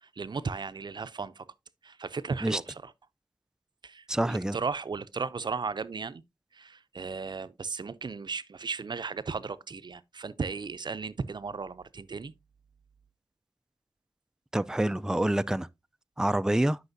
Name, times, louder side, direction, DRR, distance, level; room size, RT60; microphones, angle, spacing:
voice 1, 0.0-1.4 1.8-2.9 3.8-6.2 6.5-12.3, right 4 dB, 70° right, 0.5 m, -35 dB
voice 2, 4.1-4.6 14.5-15.7 16.2-16.8, right 1 dB, 10° right, 0.4 m, -27 dB
11.5 x 5.8 x 2.6 m
cardioid pair, 40°, 8 cm